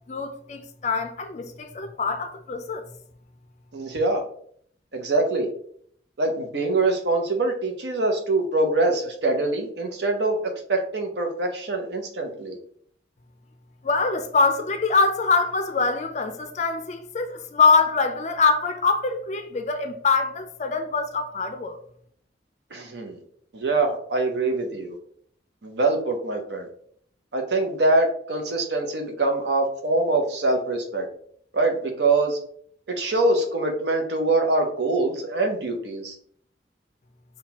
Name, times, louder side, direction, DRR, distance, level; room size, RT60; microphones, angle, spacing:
voice 1, 0.1-2.9 13.8-21.8, left 4 dB, 40° left, 0.4 m, -24 dB
voice 2, 3.7-4.2 4.9-5.5 6.2-10.4 10.7-12.6 22.7-23.2 23.5-25.0 25.6-26.7 27.3-31.1 31.5-32.4 32.9-36.2, right 2 dB, 70° right, 0.7 m, -24 dB
5.7 x 2.3 x 2.9 m
head